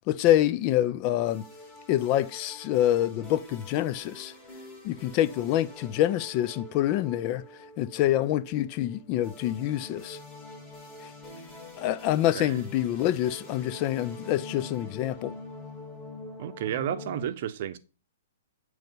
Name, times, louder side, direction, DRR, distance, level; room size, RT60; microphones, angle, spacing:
voice 1, 0.1-1.5 1.9-4.3 4.8-7.4 7.8-10.2 11.8-15.4, left 13 dB, 40° left, 0.4 m, -26 dB
sound 1, 1.2-17.2, left 2 dB, 10° left, 4.0 m, -46 dB
voice 2, 16.4-17.8, right 10 dB, 55° right, 0.7 m, -32 dB
9.1 x 3.2 x 5.2 m
hypercardioid pair, 135°, 0 cm